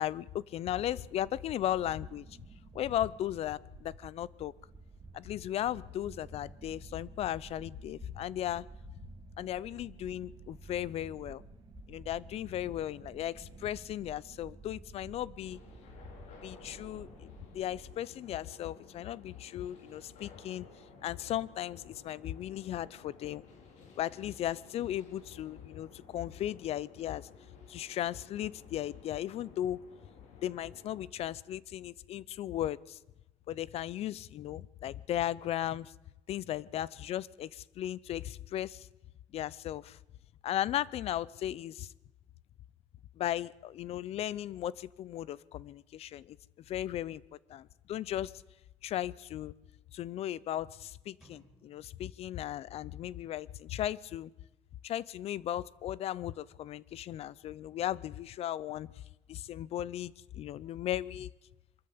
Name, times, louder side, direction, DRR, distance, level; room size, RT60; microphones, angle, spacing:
voice 1, 0.0-2.3 2.7-4.5 5.1-8.7 9.4-11.4 11.9-15.6 16.4-17.1 17.5-20.7 21.0-23.4 24.0-27.3 27.7-29.8 30.4-33.0 33.5-35.9 36.3-38.9 39.3-40.0 40.4-41.9 43.2-46.4 46.7-47.2 47.5-48.4 48.8-49.5 49.9-54.3 54.8-58.9 59.3-61.3, left 12 dB, 60° left, 23 dB, 0.6 m, -36 dB
sound 1, 0.8-18.0, right 4 dB, 35° right, 3.0 m, -52 dB
sound 2, 15.4-31.1, left 4 dB, 80° left, 4.3 m, -56 dB
sound 3, 51.2-53.2, equal, 5° right, 6.1 m, -64 dB
23.5 x 13.5 x 8.5 m, 1.0 s
cardioid pair, 135°, 12 cm